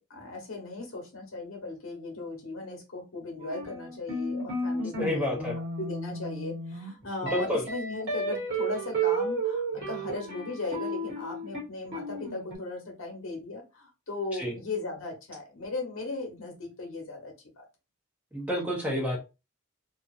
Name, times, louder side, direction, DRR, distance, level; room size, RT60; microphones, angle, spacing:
voice 1, 0.0-5.5 5.8-17.6, left 3 dB, 70° left, 1 dB, 1.0 m, -37 dB
sound 1, 3.4-12.6, right 3 dB, 50° right, 1.0 m, -32 dB
voice 2, 5.0-5.5 7.3-7.6 14.3-14.5 18.3-19.2, left 1 dB, 5° right, -2 dB, 0.6 m, -29 dB
2.7 x 2.0 x 2.4 m, 0.28 s
head